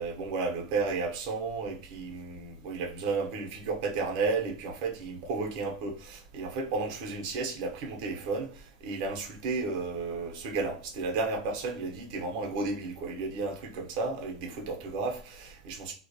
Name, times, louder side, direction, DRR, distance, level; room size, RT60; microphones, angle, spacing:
voice 1, 0.0-15.9, right 4 dB, 55° right, 0.8 m, -33 dB
2.4 x 2.1 x 2.6 m
supercardioid pair, 140°, 4 cm